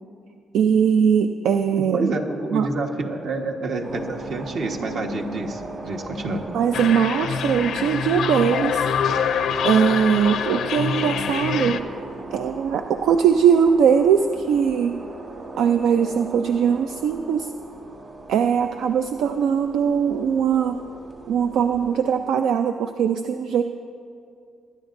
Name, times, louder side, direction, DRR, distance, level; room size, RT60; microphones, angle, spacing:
voice 1, 0.5-2.1 2.5-2.7 6.5-8.9 9.6-11.8 12.3-15.0 15.6-17.5 18.3-20.8 21.3-23.6, right 7 dB, 80° right, 7 dB, 0.4 m, -20 dB
voice 2, 1.9-6.4, right 2 dB, 65° right, 2 dB, 1.3 m, -28 dB
sound 1, 3.8-22.0, right 2 dB, 45° right, 2.0 m, -38 dB
sound 2, 6.7-11.8, left 7 dB, 75° left, 0.5 m, -25 dB
22.0 x 10.5 x 2.6 m, 2.4 s
cardioid pair, 90°, 0 cm